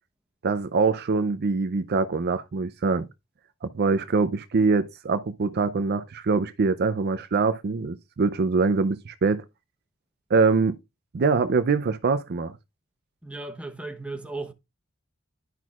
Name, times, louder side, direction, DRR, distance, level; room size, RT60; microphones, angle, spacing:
voice 1, 0.4-3.1 3.6-9.4 10.3-10.8 11.1-12.5, right 4 dB, 50° right, 0.5 m, -24 dB
voice 2, 13.2-14.5, right 2 dB, 5° right, 0.9 m, -35 dB
11.0 x 6.0 x 2.4 m
head